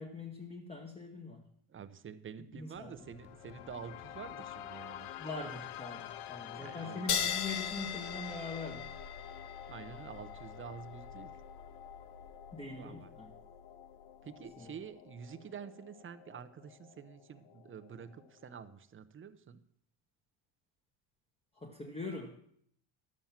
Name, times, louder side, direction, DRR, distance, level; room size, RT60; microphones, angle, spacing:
voice 1, 0.0-1.4 2.5-2.9 5.2-8.9 12.5-13.3 14.6-14.7 21.6-22.4, left 3 dB, 10° left, 2 dB, 1.1 m, -43 dB
voice 2, 1.7-5.1 6.5-7.3 9.7-11.3 12.8-13.1 14.2-19.6, right 7 dB, 25° right, 11 dB, 0.7 m, -48 dB
sound 1, 2.7-18.7, left 11 dB, 80° left, 0.8 m, -50 dB
sound 2, 7.1-14.1, left 8 dB, 50° left, 1.1 m, -40 dB
11.5 x 7.4 x 7.2 m, 0.68 s
cardioid pair, 120°, 49 cm